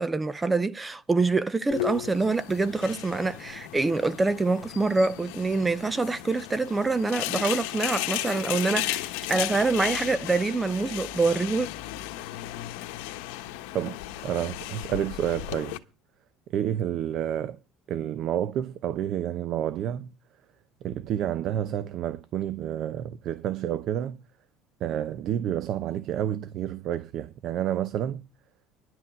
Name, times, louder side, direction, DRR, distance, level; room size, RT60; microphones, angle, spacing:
voice 1, 0.0-11.7, right 3 dB, 15° right, 0.6 m, -25 dB
sound 1, 1.7-15.8, left 16 dB, 80° left, 1.1 m, -35 dB
voice 2, 14.2-15.8 16.5-17.6 17.9-20.1 20.8-24.2 24.8-28.3, right 10 dB, 55° right, 0.7 m, -29 dB
11.0 x 6.1 x 9.0 m
cardioid pair, 125°, 0 cm